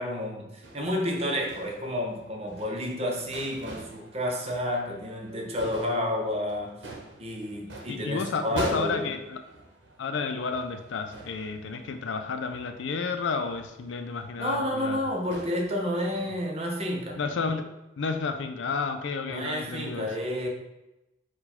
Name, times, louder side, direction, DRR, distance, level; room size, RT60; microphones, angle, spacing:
voice 1, 0.0-6.8 7.2-9.1 14.4-17.2 19.3-20.5, left 1 dB, 35° right, 1 dB, 0.7 m, -30 dB
sound 1, 0.6-16.2, right 2 dB, 75° right, 0.9 m, -44 dB
voice 2, 7.9-9.4 10.0-15.0 17.2-17.7 18.0-20.1, left 4 dB, 80° left, 7 dB, 0.4 m, -31 dB
4.5 x 2.3 x 4.1 m, 0.96 s
head